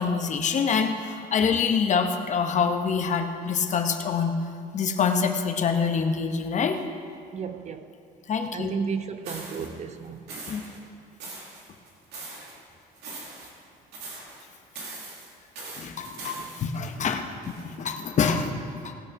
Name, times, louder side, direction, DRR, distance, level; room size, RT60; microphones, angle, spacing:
voice 1, 0.0-4.4 4.7-6.8 8.3-8.7 10.5-10.6 15.8-18.5 18.8-18.9, left 6 dB, 45° left, 6 dB, 1.1 m, -26 dB
voice 2, 7.3-7.9 8.5-10.3, right 6 dB, 40° right, 10 dB, 0.7 m, -33 dB
sound 1, 9.2-9.7 10.3-10.8 11.2-12.6 12.9-13.7 13.9-14.4 14.7-17.8, right 3 dB, 85° right, 2.5 m, -41 dB
18.5 x 6.5 x 5.9 m, 2.4 s
cardioid pair, 110°, 17 cm